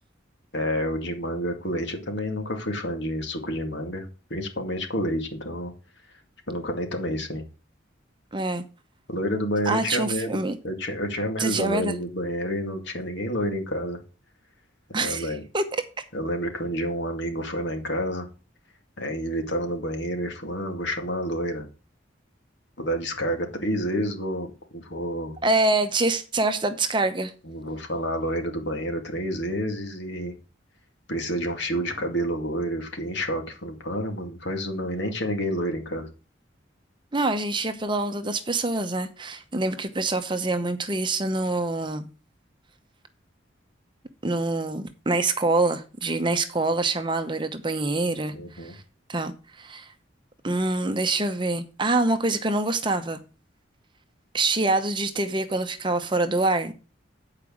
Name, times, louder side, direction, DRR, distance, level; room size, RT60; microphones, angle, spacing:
voice 1, 0.5-5.7 6.5-7.4 9.1-14.0 15.0-15.4 16.1-18.3 19.0-21.7 22.8-25.4 27.4-30.4 31.1-36.1 48.3-48.7, equal, 65° left, 2.2 m, -29 dB
voice 2, 8.3-8.6 9.7-10.6 11.4-11.9 14.9-15.3 15.5-15.6 25.4-27.3 37.1-42.1 44.2-48.3 48.6-48.8 49.1-49.9 50.4-53.2 54.3-56.7, right 2 dB, 25° right, 0.8 m, -25 dB
8.9 x 4.9 x 6.2 m
head